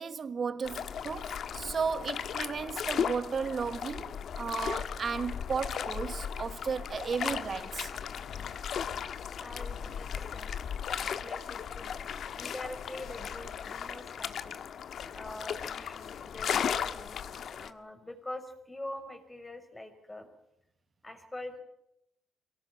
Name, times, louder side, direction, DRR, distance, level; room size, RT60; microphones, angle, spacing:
voice 1, 0.0-7.9, right 5 dB, 45° right, 1.3 m, -34 dB
sound 1, 0.6-17.7, left 8 dB, 65° left, 1.5 m, -36 dB
voice 2, 9.4-10.6 10.9-12.1 12.3-14.6 15.1-20.3 21.0-21.6, left 1 dB, 15° left, 4.8 m, -45 dB
23.5 x 17.5 x 9.0 m
cardioid pair, 90°, 0 cm